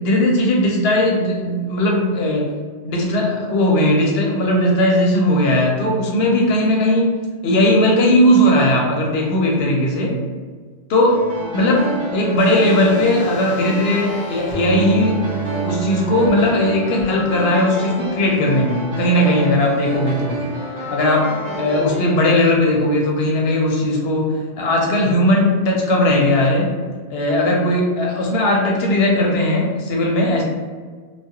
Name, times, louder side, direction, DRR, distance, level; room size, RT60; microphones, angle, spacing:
voice 1, 0.0-2.5 2.8-7.2 7.4-10.2 10.9-11.2 11.5-11.8 12.1-15.2 15.6-20.4 20.9-26.7 27.1-30.4, left 1 dB, 70° left, -1 dB, 0.7 m, -17 dB
sound 1, 11.1-22.2, right 1 dB, 50° right, 0.7 m, -29 dB
sound 2, 12.4-16.3 17.0-17.1, right 5 dB, 35° left, 0.4 m, -30 dB
2.3 x 2.2 x 2.7 m, 1.5 s
omnidirectional pair, 1.2 m